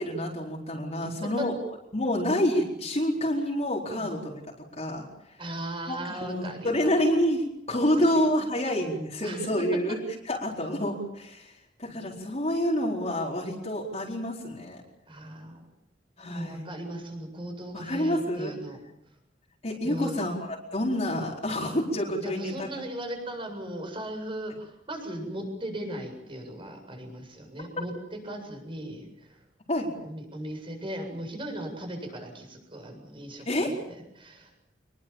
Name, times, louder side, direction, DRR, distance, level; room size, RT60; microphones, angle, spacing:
voice 1, 0.0-1.5 1.9-4.4 4.8-5.4 5.9-10.0 10.2-14.8 16.2-16.7 17.7-18.5 19.6-22.7 29.7-29.9 33.4-33.7, equal, 40° left, -2 dB, 4.4 m, -28 dB
voice 2, 1.0-1.5 3.9-4.1 5.4-6.9 8.1-8.3 9.2-9.5 15.1-15.6 16.2-18.8 19.8-20.3 22.2-29.4 30.0-34.5, right 1 dB, 30° right, 5 dB, 7.8 m, -37 dB
27.0 x 22.0 x 7.3 m, 0.79 s
head